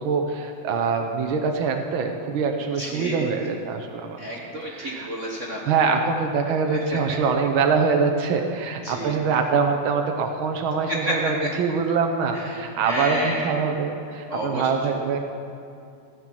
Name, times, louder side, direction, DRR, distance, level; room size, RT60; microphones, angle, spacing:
voice 1, 0.0-4.2 4.6-5.1 5.7-15.2, right 5 dB, 80° right, 4 dB, 1.1 m, -24 dB
voice 2, 2.8-3.3 4.2-5.6 6.5-7.0 8.8-9.3 10.9-11.1 11.4-11.5 12.3-13.6 14.3-15.2, equal, 60° right, -3 dB, 0.7 m, -31 dB
16.0 x 7.7 x 7.6 m, 2.5 s
omnidirectional pair, 3.5 m